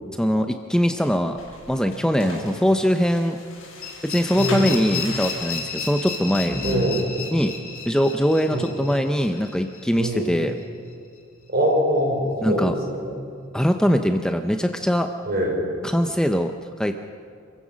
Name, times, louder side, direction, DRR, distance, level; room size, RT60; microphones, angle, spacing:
voice 1, 0.1-1.4 1.7-3.4 4.0-6.6 7.3-7.5 7.9-10.5 12.4-12.7 13.5-15.1 15.8-16.5 16.8-17.0, equal, 5° left, 6 dB, 0.6 m, -22 dB
sound 1, 1.3-6.9, left 2 dB, 75° left, 6.2 m, -41 dB
sound 2, 3.8-10.6, left 6 dB, 45° left, 3.3 m, -34 dB
voice 2, 4.4-4.8 6.6-7.1 8.5-8.7 10.0-10.3 11.5-13.1 15.3-15.6, equal, 50° right, -1 dB, 5.2 m, -23 dB
sound 3, 6.2-6.9 7.2-7.3 8.9-9.0 9.2-9.6, equal, 20° left, 7.6 m, -33 dB
27.0 x 15.5 x 6.3 m, 2.3 s
head